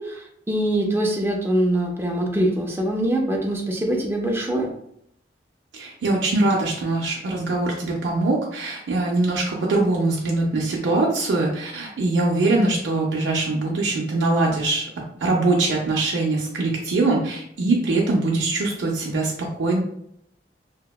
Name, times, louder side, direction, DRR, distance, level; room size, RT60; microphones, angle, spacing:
voice 1, 0.0-4.7, right 1 dB, 15° right, 1 dB, 0.4 m, -23 dB
voice 2, 5.7-14.9 15.2-19.8, right 2 dB, 75° right, -2 dB, 0.4 m, -22 dB
2.8 x 2.0 x 2.2 m, 0.72 s
head